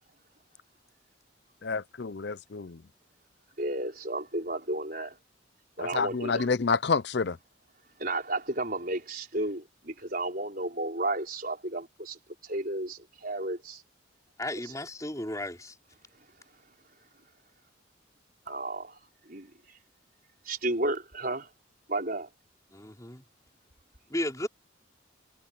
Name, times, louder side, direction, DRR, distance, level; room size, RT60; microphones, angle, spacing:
voice 1, 1.6-2.8 5.9-7.4, left 4 dB, 55° left, 0.5 m, -28 dB
voice 2, 3.6-5.2 5.8-6.5 8.0-13.8 14.6-14.7 18.5-19.0 19.3-19.5 20.4-21.5 21.9-22.3, right 2 dB, 45° right, 5.2 m, -33 dB
voice 3, 14.4-15.8 22.7-23.2 24.1-24.5, left 1 dB, 15° left, 5.4 m, -34 dB
head